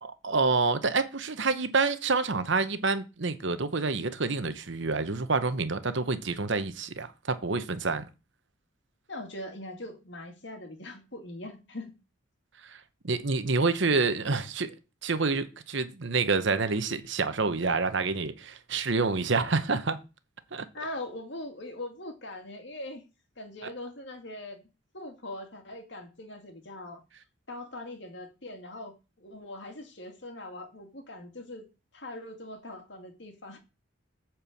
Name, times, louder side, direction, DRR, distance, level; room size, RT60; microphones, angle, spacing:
voice 1, 0.0-8.1 12.6-12.8 13.0-14.7 15.0-20.0 20.5-20.6, right 4 dB, 60° right, 0.9 m, -28 dB
voice 2, 9.1-11.9 20.7-23.0 23.4-24.7 24.9-27.0 27.5-31.7 31.9-33.6, left 1 dB, 55° left, 2.1 m, -41 dB
8.8 x 4.6 x 7.1 m
head